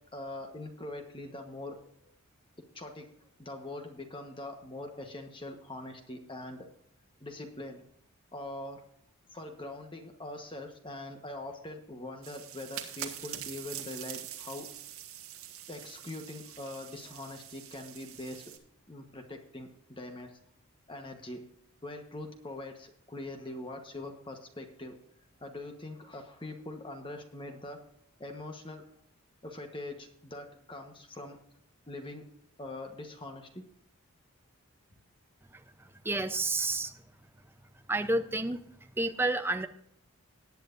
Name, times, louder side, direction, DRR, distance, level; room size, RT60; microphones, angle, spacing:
voice 1, 0.1-2.1 2.7-3.1 3.4-6.7 7.2-7.8 8.3-8.8 9.3-14.7 15.7-18.5 18.9-20.4 20.9-21.4 21.8-24.9 25.4-27.8 28.2-28.8 29.4-31.4 31.9-32.2 32.6-33.6, left 2 dB, 25° left, 4 dB, 1.2 m, -43 dB
sound 1, 12.2-18.6, right 10 dB, 70° right, 1.6 m, -44 dB
voice 2, 36.0-36.9 37.9-38.6 39.0-39.7, right 2 dB, 10° right, 8 dB, 0.6 m, -29 dB
18.5 x 9.2 x 2.6 m, 0.71 s
head